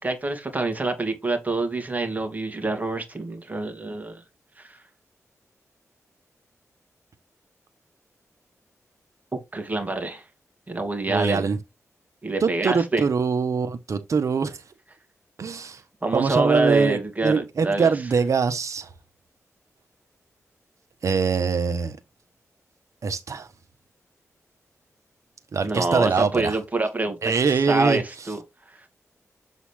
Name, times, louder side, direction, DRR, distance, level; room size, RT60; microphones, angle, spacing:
voice 1, 0.0-4.2 4.6-4.8 9.5-10.2 10.7-11.4 12.2-13.0 16.0-17.9 25.6-28.4, right 2 dB, 30° right, 2.3 m, -26 dB
voice 2, 11.1-11.6 12.4-14.6 15.4-15.8 16.1-18.9 21.0-22.0 23.0-23.5 25.5-26.6 27.2-28.0, right 5 dB, 65° right, 1.2 m, -23 dB
7.5 x 4.0 x 3.4 m
cardioid pair, 70°, 6 cm